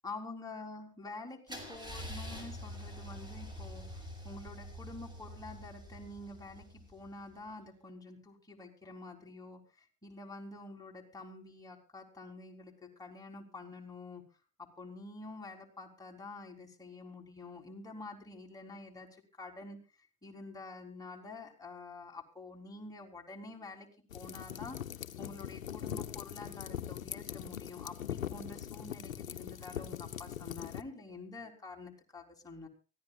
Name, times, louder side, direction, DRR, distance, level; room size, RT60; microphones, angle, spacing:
voice 1, 0.0-14.2 14.6-23.9 24.1-24.8 25.2-32.7, left 3 dB, 10° left, 0 dB, 3.8 m, -48 dB
Car / Engine starting / Idling, 1.5-7.3, equal, 10° right, 5.8 m, -46 dB
sound 1, 24.1-30.8, left 10 dB, 75° left, 0.9 m, -41 dB
24.0 x 15.5 x 2.4 m, 0.35 s
figure-of-eight pair, 75°, 40 cm